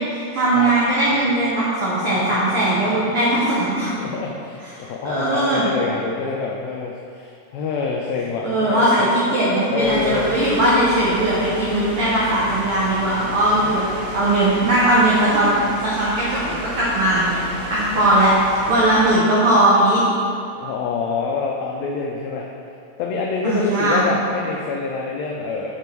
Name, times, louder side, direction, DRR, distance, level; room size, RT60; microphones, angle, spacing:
voice 1, 0.0-3.9 4.8-5.7 8.4-13.8 14.1-17.4 17.7-18.3 18.7-20.0 23.4-24.1, right 1 dB, 80° right, -7 dB, 1.2 m, -19 dB
voice 2, 4.0-8.8 9.7-10.3 13.5-13.7 17.9-18.0 20.5-22.5 23.0-25.7, left 4 dB, 90° left, -1 dB, 1.5 m, -26 dB
sound 1, 9.8-19.2, equal, 60° right, 1.3 m, -33 dB
6.8 x 3.4 x 4.4 m, 2.4 s
omnidirectional pair, 3.7 m